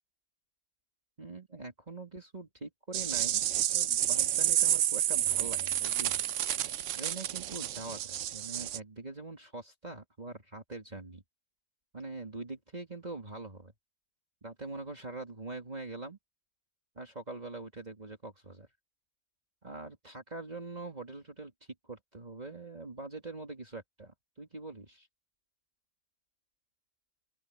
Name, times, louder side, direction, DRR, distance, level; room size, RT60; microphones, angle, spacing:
voice 1, 1.2-3.4 3.7-6.2 6.9-11.2 11.9-13.7 14.4-16.2 17.0-18.7 19.6-21.5 21.9-25.1, right 3 dB, 30° right, 2.4 m, -43 dB
sound 1, 2.9-8.8, right 11 dB, 70° right, 1.0 m, -30 dB
open air
omnidirectional pair, 1.4 m